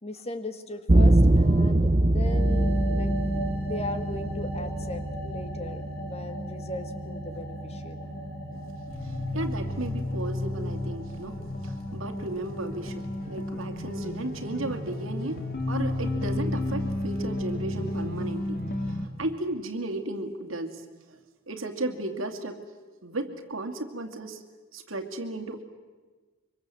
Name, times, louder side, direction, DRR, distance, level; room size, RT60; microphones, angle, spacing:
voice 1, 0.0-3.1 3.6-8.1, left 2 dB, 30° left, 8 dB, 1.8 m, -38 dB
sound 1, 0.9-9.9, right 1 dB, 30° right, 0.8 m, -25 dB
sound 2, 1.4-19.1, left 1 dB, 55° left, 2.9 m, -33 dB
voice 2, 9.0-15.4 15.7-21.2 21.5-22.7 23.0-24.4 24.7-25.6, right 2 dB, 90° right, 5 dB, 2.5 m, -35 dB
24.5 x 24.5 x 7.7 m, 1.4 s
head